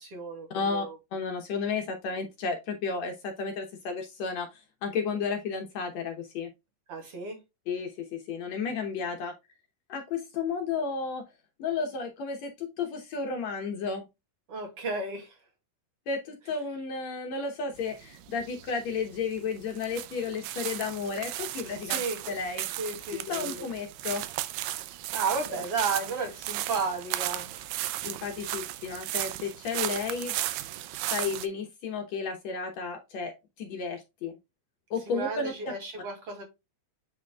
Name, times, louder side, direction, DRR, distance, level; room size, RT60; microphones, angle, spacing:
voice 1, 0.0-1.0 6.9-7.4 14.5-15.3 21.8-22.2 22.8-23.5 25.1-27.5 35.1-36.4, right 4 dB, 45° right, 3.2 m, -33 dB
voice 2, 0.5-0.9 1.1-6.5 7.7-9.3 9.9-11.2 11.6-14.0 16.1-22.0 22.3-22.7 23.3-24.2 28.0-30.5 31.1-33.3 33.6-34.4 34.9-35.5, left 5 dB, 65° left, 1.9 m, -32 dB
sound 1, 17.8-31.5, right 14 dB, 80° right, 2.2 m, -35 dB
8.0 x 5.1 x 2.3 m
omnidirectional pair, 4.0 m